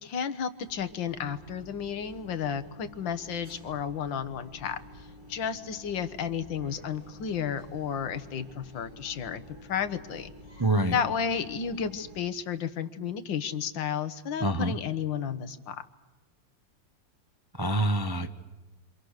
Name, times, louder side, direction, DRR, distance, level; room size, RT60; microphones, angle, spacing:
voice 1, 0.0-4.8 5.3-9.4 9.7-10.3 10.9-15.8, left 7 dB, 80° left, 11 dB, 1.9 m, -32 dB
sound 1, 0.6-12.2, equal, 50° right, 6.1 m, -50 dB
voice 2, 10.6-11.0 14.4-14.7 17.6-18.4, right 1 dB, 25° right, 6 dB, 0.5 m, -26 dB
28.0 x 26.5 x 6.5 m, 1.2 s
omnidirectional pair, 2.0 m